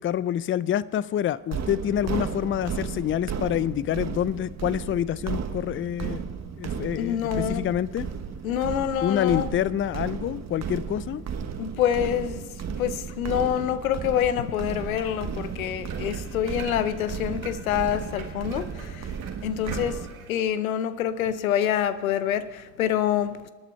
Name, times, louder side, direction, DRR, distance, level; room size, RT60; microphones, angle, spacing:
voice 1, 0.0-6.2 6.6-8.1 9.0-11.2, left 10 dB, 30° left, 0.5 m, -27 dB
sound 1, 1.5-20.1, right 7 dB, 40° right, 1.3 m, -34 dB
voice 2, 7.0-7.7 8.4-9.5 11.6-12.4 12.8-19.1 19.4-20.0 20.3-23.5, left 10 dB, 90° left, 0.6 m, -26 dB
sound 2, 14.7-20.3, right 5 dB, 90° right, 1.5 m, -44 dB
25.0 x 8.7 x 4.4 m
hypercardioid pair, 50°, 40 cm